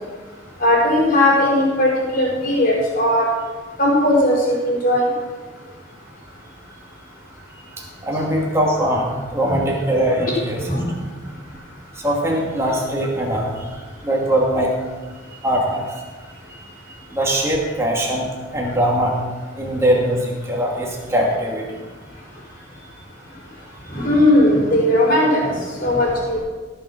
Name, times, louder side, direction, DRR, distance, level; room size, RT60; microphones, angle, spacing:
voice 1, 0.6-3.2 3.8-5.1 9.5-9.6 10.7-10.9 23.9-26.4, left 1 dB, 45° left, -4 dB, 5.0 m, -17 dB
voice 2, 7.8-10.6 11.9-14.7 15.4-15.9 16.5-16.6 17.1-19.1 19.5-21.7, right 1 dB, 15° right, -2 dB, 2.4 m, -21 dB
17.0 x 7.0 x 6.1 m, 1.4 s
head